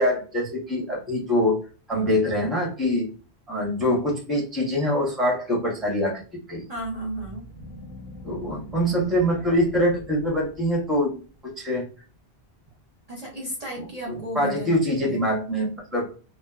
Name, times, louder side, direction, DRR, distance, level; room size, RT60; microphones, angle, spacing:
voice 1, 0.0-1.6 1.9-3.1 3.5-6.2 6.5-6.6 8.2-11.9 14.1-16.1, equal, ahead, 0 dB, 0.7 m, -24 dB
sound 1, 6.7-11.1, equal, 70° left, 1.0 m, -41 dB
voice 2, 6.7-7.4 13.1-15.2, right 1 dB, 40° right, -1 dB, 0.7 m, -33 dB
2.9 x 2.0 x 2.2 m, 0.36 s
omnidirectional pair, 1.1 m